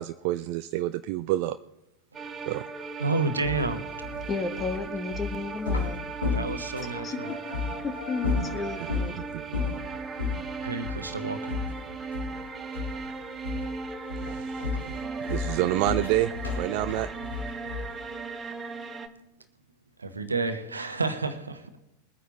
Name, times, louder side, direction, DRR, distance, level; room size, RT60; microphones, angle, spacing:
voice 1, 0.0-1.6 2.5-2.6 9.3-9.6 14.2-15.0 15.3-17.1 17.5-17.6, right 15 dB, 45° right, 12 dB, 0.4 m, -28 dB
sound 1, 2.1-19.1, right 4 dB, 15° right, 1.1 m, -37 dB
voice 2, 3.0-3.8 6.3-7.3 10.6-11.6 20.0-21.8, right 3 dB, 75° right, 9 dB, 1.2 m, -30 dB
sound 2, 3.4-7.1 7.5-7.7 8.2-9.1 9.5-9.8 10.2-10.4 10.8-11.1 11.5-12.4 12.7-13.1 13.4-13.8 14.1-18.0, left 4 dB, 75° left, 3.7 m, -32 dB
voice 3, 4.3-6.0 7.0-7.4 7.8-9.1, left 4 dB, 20° left, 9 dB, 1.3 m, -33 dB
sound 3, 6.8-9.0, left 2 dB, 55° left, 3.2 m, -43 dB
22.0 x 9.2 x 3.9 m, 0.90 s
figure-of-eight pair, 90°, 0 cm